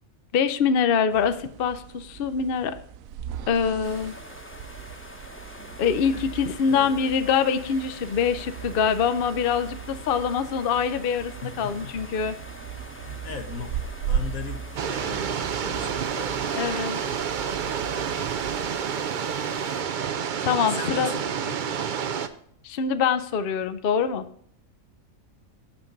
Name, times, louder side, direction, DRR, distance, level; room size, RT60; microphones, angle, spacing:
voice 1, 0.3-2.7 3.5-4.1 5.8-12.3 16.5-17.0 20.4-21.1 22.6-24.2, left 6 dB, 55° left, 11 dB, 0.6 m, -24 dB
sound 1, 1.1-18.8, right 8 dB, 80° right, 1.0 m, -38 dB
sound 2, 3.8-19.8, left 1 dB, 10° left, 0.9 m, -44 dB
voice 2, 6.6-7.1 11.4-11.9 13.0-13.7 14.1-14.7 14.9-16.3 20.7-21.6, left 6 dB, 80° left, 6 dB, 1.5 m, -38 dB
sound 3, 14.8-22.3, right 7 dB, 60° right, 0.5 m, -29 dB
7.1 x 5.8 x 5.1 m, 0.66 s
omnidirectional pair, 1.4 m